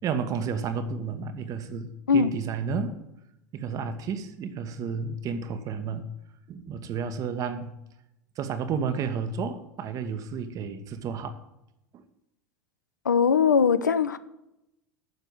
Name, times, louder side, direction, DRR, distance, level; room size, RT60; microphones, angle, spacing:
voice 1, 0.0-3.0 3.5-6.1 6.5-7.7 8.4-11.4 11.9-12.0, right 6 dB, 35° right, 1.3 m, -31 dB
voice 2, 13.0-14.2, left 6 dB, 75° left, 0.6 m, -21 dB
9.7 x 6.7 x 8.9 m
figure-of-eight pair, 80°, 10 cm